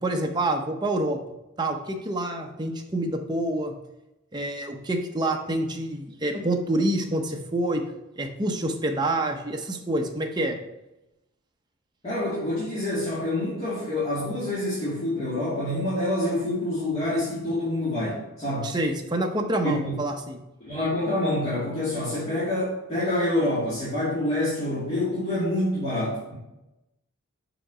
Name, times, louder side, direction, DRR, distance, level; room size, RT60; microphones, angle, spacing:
voice 1, 0.0-1.2 1.6-3.7 4.3-7.8 8.2-10.6 18.6-20.4, right 1 dB, 20° right, 3 dB, 0.7 m, -27 dB
voice 2, 12.0-18.7 19.6-19.9 20.6-26.3, left 1 dB, 30° left, -10 dB, 2.0 m, -27 dB
5.8 x 5.0 x 5.0 m, 0.94 s
head